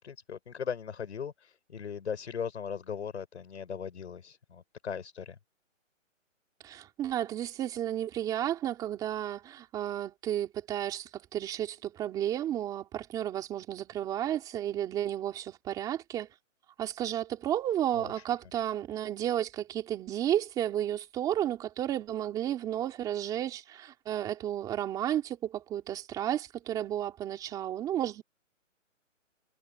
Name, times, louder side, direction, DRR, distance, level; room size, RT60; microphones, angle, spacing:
voice 1, 0.0-5.4 17.9-18.2, left 7 dB, 60° left, 7.1 m, -38 dB
voice 2, 6.6-16.3 16.8-28.2, right 11 dB, 10° right, 2.9 m, -32 dB
hypercardioid pair, 170°, 38 cm